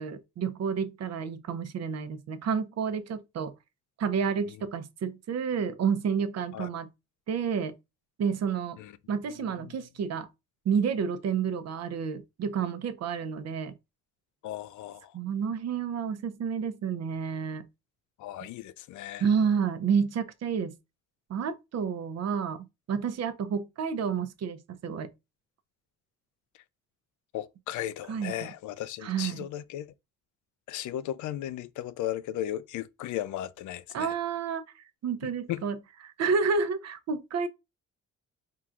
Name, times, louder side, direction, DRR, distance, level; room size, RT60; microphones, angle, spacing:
voice 1, 0.0-3.5 4.0-6.9 7.3-7.7 8.2-8.8 9.1-10.3 10.6-13.7 15.1-17.7 19.2-20.8 21.3-25.1 28.1-28.5 29.0-29.4 33.9-35.8 36.0-37.5, right 6 dB, 60° right, 0.7 m, -30 dB
voice 2, 14.4-15.1 18.2-19.3 27.3-29.9 30.7-34.1 35.2-35.6, left 12 dB, 75° left, 0.5 m, -36 dB
4.4 x 3.7 x 2.4 m
cardioid pair, 90°, 30 cm